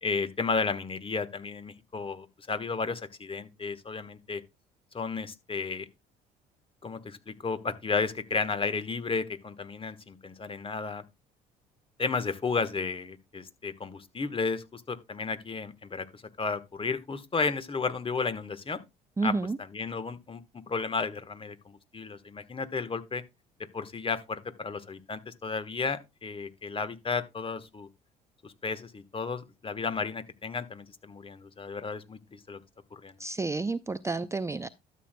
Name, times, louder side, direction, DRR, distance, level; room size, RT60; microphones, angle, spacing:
voice 1, 0.0-4.4 4.9-5.8 6.8-11.0 12.0-18.8 19.2-19.3 19.7-23.2 23.7-27.9 28.4-32.6 32.9-33.2, left 4 dB, 30° left, 1.3 m, -33 dB
voice 2, 19.2-19.6 33.2-34.7, right 3 dB, 15° right, 0.5 m, -30 dB
12.5 x 7.5 x 2.2 m
hypercardioid pair, 60°, 19 cm